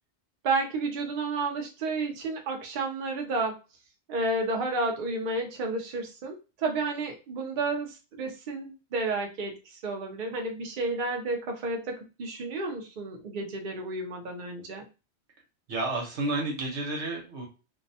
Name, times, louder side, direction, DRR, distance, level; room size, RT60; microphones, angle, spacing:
voice 1, 0.4-3.5 4.1-14.8, right 3 dB, 55° right, 3 dB, 0.7 m, -31 dB
voice 2, 15.7-17.5, right 2 dB, 90° right, 0 dB, 1.2 m, -31 dB
2.6 x 2.1 x 2.7 m, 0.30 s
omnidirectional pair, 1.1 m